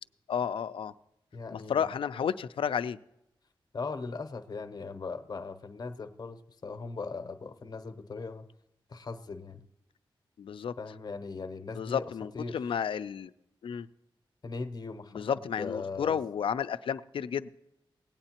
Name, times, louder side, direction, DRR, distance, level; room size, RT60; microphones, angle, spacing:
voice 1, 0.3-0.9 1.5-3.0 10.4-10.7 11.7-13.3 13.6-13.9 15.1-17.5, left 8 dB, 75° left, 13 dB, 0.4 m, -32 dB
voice 2, 1.3-1.9 3.7-8.5 8.9-9.6 10.8-12.6 14.4-16.2, left 4 dB, 45° left, 9 dB, 0.7 m, -39 dB
18.0 x 8.8 x 2.9 m, 0.83 s
wide cardioid pair, 80°, 9 cm